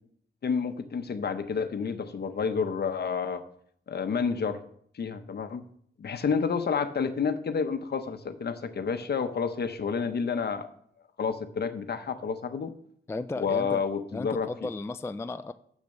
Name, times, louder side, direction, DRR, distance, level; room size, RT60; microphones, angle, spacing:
voice 1, 0.4-3.4 3.9-4.6 4.9-5.6 6.0-10.7 11.2-12.7 13.4-14.5, left 5 dB, 55° left, 9 dB, 0.8 m, -29 dB
voice 2, 13.1-13.8 14.1-15.5, left 3 dB, 15° left, 11 dB, 0.3 m, -34 dB
7.3 x 6.9 x 6.6 m, 0.65 s
wide cardioid pair, 150°, 20 cm